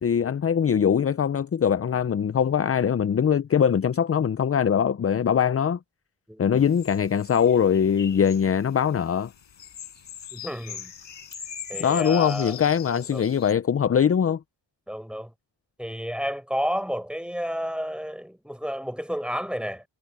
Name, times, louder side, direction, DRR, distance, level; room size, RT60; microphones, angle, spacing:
voice 1, 0.0-5.8 6.4-9.3 11.8-14.4, left 8 dB, 30° left, 0.5 m, -22 dB
voice 2, 6.3-6.7 10.3-10.9 11.7-12.6 12.9-13.3 14.9-15.3 15.8-19.8, equal, ahead, 4.8 m, -31 dB
sound 1, 6.6-13.5, left 8 dB, 75° left, 5.6 m, -41 dB
cardioid pair, 80°, 45 cm